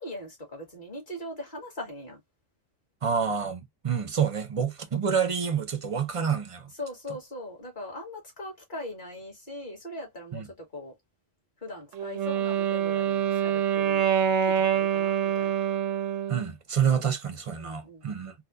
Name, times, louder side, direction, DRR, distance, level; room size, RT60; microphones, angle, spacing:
voice 1, 0.0-2.2 6.8-10.9 11.6-15.5 17.6-18.1, left 1 dB, 40° left, 1.9 m, -40 dB
voice 2, 3.0-6.7 10.3-10.5 16.3-18.3, right 7 dB, 40° right, 0.5 m, -28 dB
Wind instrument woodwind instrument, 11.9-16.5, right 9 dB, 85° right, 1.0 m, -26 dB
4.1 x 2.3 x 2.4 m
omnidirectional pair, 1.3 m